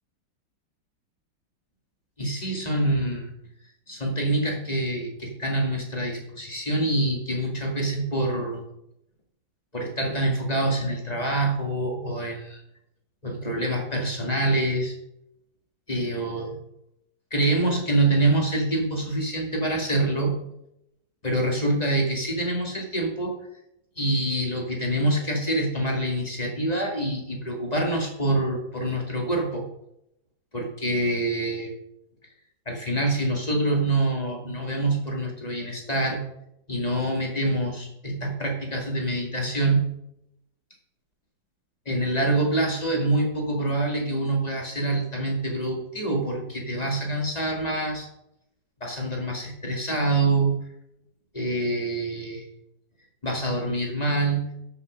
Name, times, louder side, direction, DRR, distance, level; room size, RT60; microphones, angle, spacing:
voice 1, 2.2-3.3 3.9-8.6 9.7-12.6 13.2-14.9 15.9-16.5 17.3-20.4 21.2-23.3 24.0-29.6 30.5-31.7 32.7-36.2 36.7-39.8 41.9-48.1 48.8-50.5 51.3-52.4 53.2-54.5, right 2 dB, 20° left, 1 dB, 2.3 m, -26 dB
13.0 x 6.5 x 5.2 m, 0.81 s
omnidirectional pair, 2.1 m